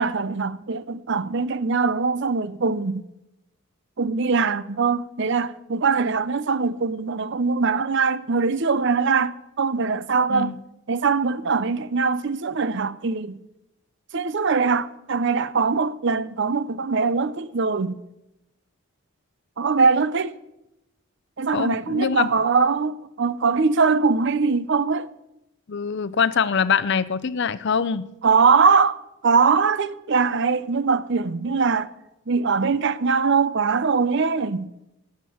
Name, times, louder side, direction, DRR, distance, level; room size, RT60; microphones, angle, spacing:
voice 1, 0.0-3.1 4.0-10.5 10.9-13.4 14.1-18.0 19.6-20.3 21.4-25.1 28.2-31.9 32.3-34.7, right 5 dB, 55° right, 0.6 m, -22 dB
voice 2, 21.5-22.3 25.7-28.1, left 6 dB, 55° left, 0.5 m, -23 dB
18.0 x 7.4 x 7.1 m
head